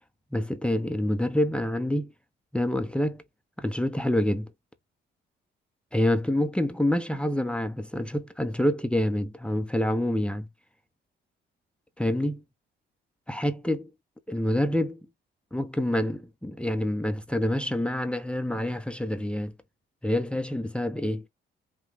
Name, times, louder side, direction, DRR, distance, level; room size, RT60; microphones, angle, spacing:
voice 1, 0.3-2.1 2.5-3.2 3.6-4.5 5.9-10.5 12.0-12.4 13.3-13.9 14.3-15.0 15.5-19.5 20.0-21.2, left 1 dB, 5° left, 0.8 m, -27 dB
5.6 x 2.3 x 3.5 m
cardioid pair, 90°, 20 cm